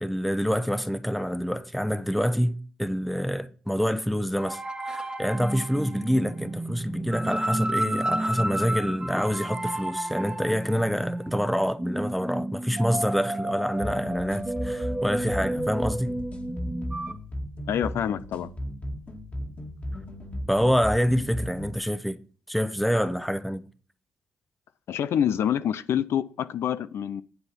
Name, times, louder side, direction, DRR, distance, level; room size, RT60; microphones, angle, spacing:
voice 1, 0.0-4.6 4.9-16.2 20.5-22.2 22.5-23.6, equal, ahead, 0.8 m, -26 dB
sound 1, 4.4-17.1, right 1 dB, 15° right, 1.2 m, -31 dB
sound 2, 13.8-21.8, equal, 35° left, 2.1 m, -36 dB
voice 2, 17.7-18.5 24.9-27.2, left 9 dB, 70° left, 0.5 m, -26 dB
9.4 x 7.9 x 4.4 m
cardioid pair, 70°, 4 cm